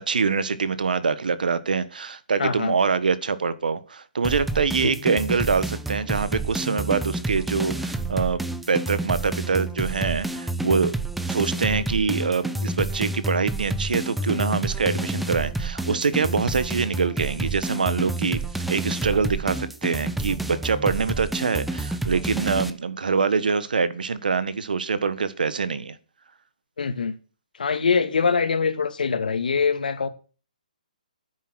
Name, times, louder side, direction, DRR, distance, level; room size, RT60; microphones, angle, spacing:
voice 1, 0.1-8.4 8.7-10.9 11.3-18.4 18.7-26.0, right 5 dB, 85° right, 1.4 m, -24 dB
voice 2, 2.4-2.7 26.8-27.1 27.6-30.1, left 5 dB, 80° left, 2.2 m, -23 dB
sound 1, 4.2-22.7, right 2 dB, ahead, 0.7 m, -29 dB
10.5 x 9.3 x 6.3 m
hypercardioid pair, 160°, 5 cm